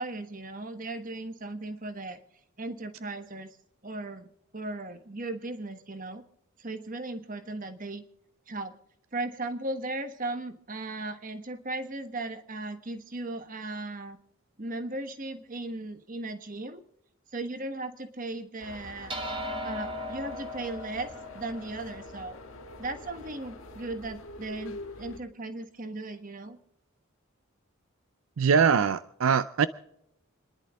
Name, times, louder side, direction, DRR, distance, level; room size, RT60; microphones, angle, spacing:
voice 1, 0.0-2.2 2.6-3.6 3.8-4.3 4.5-6.2 6.6-8.0 8.5-8.7 9.1-14.2 14.6-16.8 17.3-19.2 19.6-22.4 22.8-26.6, right 2 dB, 40° right, 1.3 m, -37 dB
sound 1, 18.6-25.2, left 2 dB, 75° left, 1.5 m, -45 dB
sound 2, 19.1-23.8, left 1 dB, 25° right, 1.5 m, -39 dB
voice 2, 28.4-29.7, right 6 dB, 75° right, 0.5 m, -22 dB
29.0 x 11.0 x 3.6 m
head